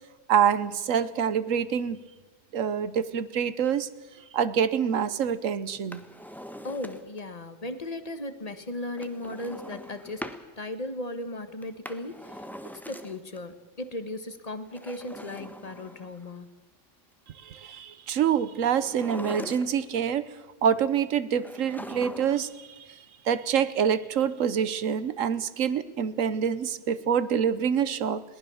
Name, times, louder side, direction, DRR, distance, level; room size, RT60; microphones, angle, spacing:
voice 1, 0.3-2.0 2.5-3.9 4.3-6.0 17.4-20.3 20.6-23.0 23.2-28.2, right 8 dB, 85° right, 15 dB, 1.3 m, -26 dB
Drawer open or close, 5.8-7.3 9.0-10.4 11.6-13.4 14.6-16.3 18.7-20.0 21.4-22.5 22.8-22.9, equal, ahead, 1.2 m, -42 dB
voice 2, 6.6-10.2 10.6-12.4 12.9-16.5, left 1 dB, 30° left, 9 dB, 1.5 m, -36 dB
21.5 x 19.0 x 7.1 m, 1.2 s
omnidirectional pair, 1.3 m